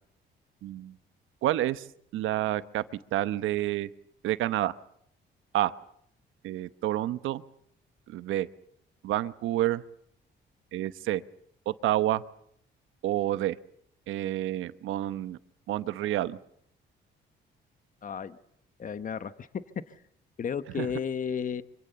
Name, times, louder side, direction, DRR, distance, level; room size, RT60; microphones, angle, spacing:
voice 1, 0.6-0.9 1.4-1.9 2.1-2.8 3.1-3.9 4.2-4.7 5.5-5.7 6.4-7.4 8.1-8.5 9.0-9.8 10.7-11.2 11.7-12.2 13.0-13.5 14.1-15.4 15.7-16.4 20.8-20.9, right 14 dB, 85° right, 14 dB, 1.0 m, -28 dB
voice 2, 18.0-18.4 18.8-19.5 19.9-20.0 20.4-21.6, left 7 dB, 40° left, 13 dB, 1.1 m, -33 dB
25.0 x 25.0 x 7.0 m, 0.71 s
cardioid pair, 90°, 20 cm